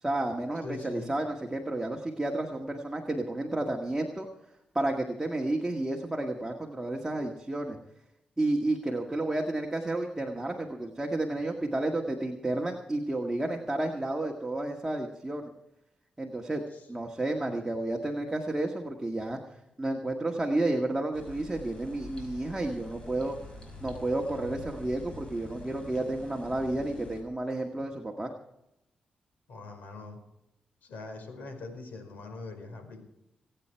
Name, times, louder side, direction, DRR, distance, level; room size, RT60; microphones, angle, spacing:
voice 1, 0.0-4.3 4.7-7.8 8.4-15.5 16.2-16.6 16.9-19.4 19.8-23.4 23.8-28.3, right 2 dB, 10° right, 0 dB, 1.8 m, -31 dB
voice 2, 0.6-1.1 16.7-16.8 29.5-30.2 30.8-33.0, left 3 dB, 80° left, 5 dB, 4.7 m, -42 dB
sound 1, 21.1-27.2, left 2 dB, 30° left, 5.9 m, -46 dB
24.5 x 9.1 x 4.6 m, 0.85 s
cardioid pair, 85°, 3 cm